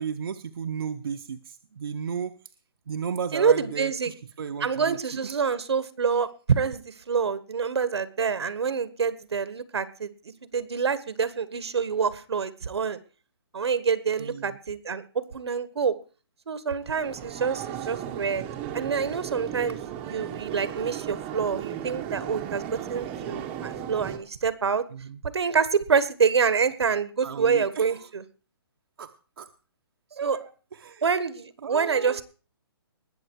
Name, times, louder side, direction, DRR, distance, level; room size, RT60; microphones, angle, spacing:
voice 1, 0.0-2.4 2.9-5.3 14.2-14.6 24.9-25.2 27.2-28.1 29.0-29.5 30.1-31.1 31.6-32.2, right 7 dB, 60° right, 6 dB, 0.9 m, -34 dB
voice 2, 3.3-4.1 4.6-10.1 10.5-13.0 13.5-16.0 16.5-18.4 18.7-24.8 25.2-28.2 30.2-30.4 31.0-32.2, right 6 dB, 85° right, 15 dB, 1.5 m, -26 dB
sound 1, 16.8-24.2, right 10 dB, 10° right, 0.9 m, -35 dB
20.0 x 7.6 x 4.7 m, 0.36 s
hypercardioid pair, 175°, 14 cm